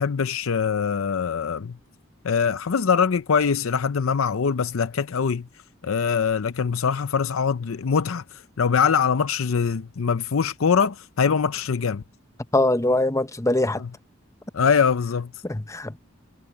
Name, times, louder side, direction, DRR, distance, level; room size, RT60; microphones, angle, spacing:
voice 1, 0.0-1.8 2.2-5.5 5.8-12.0 13.8-13.9 14.5-15.3, left 6 dB, 85° left, 0.6 m, -23 dB
voice 2, 12.5-13.8 15.5-16.0, left 2 dB, 15° left, 0.8 m, -22 dB
head